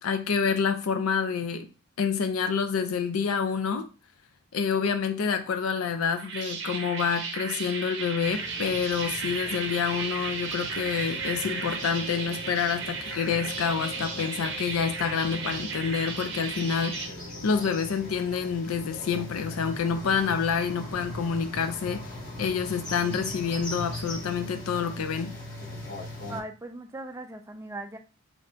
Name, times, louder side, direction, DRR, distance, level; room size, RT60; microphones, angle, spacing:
voice 1, 0.0-1.7 2.0-3.9 4.5-17.1 17.4-25.4, left 6 dB, 75° left, 8 dB, 0.4 m, -28 dB
sound 1, 6.0-17.1, right 5 dB, 55° right, 0.6 m, -35 dB
sound 2, 8.2-26.4, left 2 dB, 50° left, 1.2 m, -40 dB
voice 2, 26.3-28.0, right 2 dB, 15° right, 6 dB, 0.3 m, -39 dB
3.5 x 2.5 x 4.2 m, 0.34 s
head